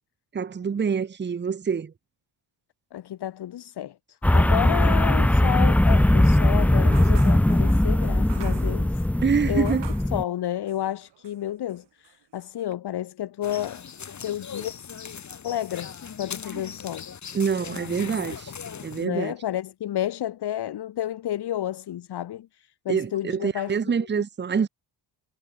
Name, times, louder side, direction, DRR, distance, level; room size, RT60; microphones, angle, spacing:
voice 1, 0.3-1.9 4.8-5.0 9.2-9.9 16.5-16.6 17.3-18.5 18.8-19.3 22.9-24.7, right 6 dB, 25° right, 1.1 m, -26 dB
voice 2, 2.9-9.0 9.5-9.8 10.1-13.8 14.2-14.7 15.4-15.9 16.2-17.1 19.0-23.7, left 12 dB, 60° left, 1.8 m, -31 dB
sound 1, 4.2-10.2, left 1 dB, 5° left, 0.6 m, -20 dB
sound 2, 6.9-10.2 10.7-11.4 11.7-12.7, right 11 dB, 75° right, 7.5 m, -47 dB
sound 3, 13.4-19.1, left 7 dB, 40° left, 5.4 m, -39 dB
cardioid pair, 145°, 43 cm